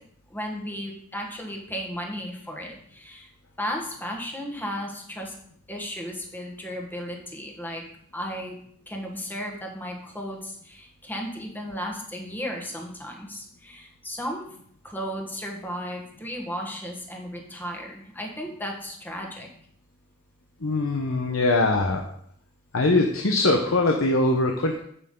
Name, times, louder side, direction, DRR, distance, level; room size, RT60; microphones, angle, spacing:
voice 1, 0.3-3.3 3.6-5.3 5.7-7.8 8.1-8.6 8.9-14.5 14.8-19.5, equal, 10° left, 1 dB, 1.3 m, -34 dB
voice 2, 20.6-22.0 22.7-24.8, left 2 dB, 75° left, 2 dB, 0.9 m, -22 dB
8.1 x 8.0 x 3.7 m, 0.67 s
head